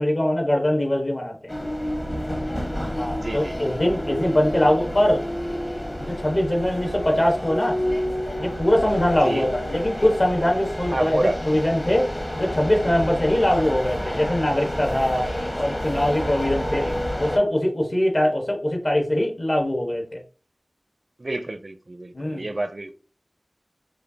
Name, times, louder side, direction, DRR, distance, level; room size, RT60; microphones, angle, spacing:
voice 1, 0.0-1.6 3.0-5.2 6.0-7.8 8.4-12.1 12.4-15.3 15.6-16.9 17.2-20.2 22.1-22.4, left 1 dB, 50° left, 1.3 m, -22 dB
sound 1, 1.5-17.4, equal, 35° left, 1.1 m, -29 dB
voice 2, 3.1-3.6 9.2-9.5 10.9-11.4 16.7-17.0 21.2-22.9, right 2 dB, 60° right, 0.4 m, -29 dB
6.4 x 2.4 x 2.7 m
wide cardioid pair, 55°, 0 cm